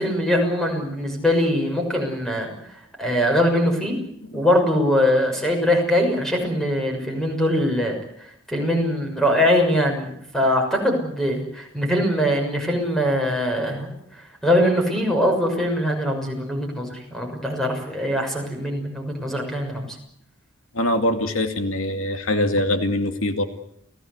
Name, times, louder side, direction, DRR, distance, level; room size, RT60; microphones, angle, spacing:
voice 1, 0.0-2.5 3.0-4.0 4.3-8.0 8.5-20.0, equal, ahead, 2 dB, 6.4 m, -22 dB
voice 2, 20.7-23.4, left 1 dB, 85° left, 6 dB, 2.4 m, -23 dB
29.5 x 17.5 x 8.2 m, 0.75 s
head